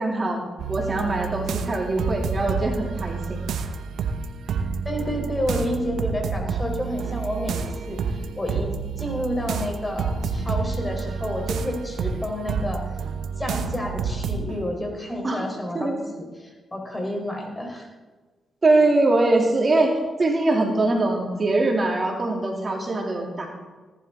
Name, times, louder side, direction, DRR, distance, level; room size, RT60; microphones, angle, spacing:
voice 1, 0.0-3.4 15.2-15.4 15.7-16.0 18.6-19.9 20.2-23.5, right 2 dB, 40° right, 0 dB, 3.0 m, -22 dB
sound 1, 0.6-14.6, right 5 dB, 75° right, 0.9 m, -29 dB
voice 2, 4.5-13.0 13.4-17.9, left 1 dB, 20° left, 2 dB, 4.0 m, -30 dB
18.0 x 11.5 x 3.8 m, 1.3 s
supercardioid pair, 50°, 0 cm